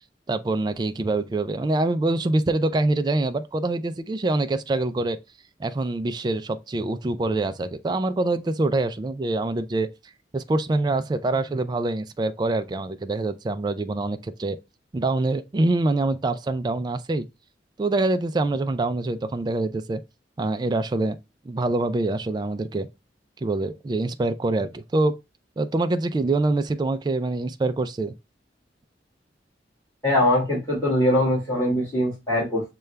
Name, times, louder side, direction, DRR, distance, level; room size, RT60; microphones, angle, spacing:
voice 1, 0.3-5.2 5.6-9.9 10.3-14.6 14.9-17.3 17.8-20.0 20.4-21.2 21.5-22.9 23.4-25.1 25.6-28.1, right 2 dB, 25° right, 0.3 m, -25 dB
voice 2, 30.0-32.7, left 1 dB, 15° left, 2.1 m, -22 dB
6.6 x 2.3 x 3.2 m
head